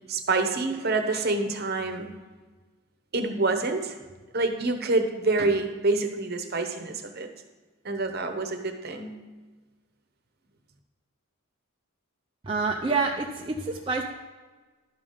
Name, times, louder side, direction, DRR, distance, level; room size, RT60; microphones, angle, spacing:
voice 1, 0.1-2.1 3.1-4.0 4.3-7.3 7.8-9.2, right 3 dB, 45° right, 6 dB, 0.9 m, -27 dB
voice 2, 12.4-14.0, right 4 dB, 25° right, 0 dB, 0.5 m, -27 dB
12.0 x 5.1 x 5.5 m, 1.3 s
head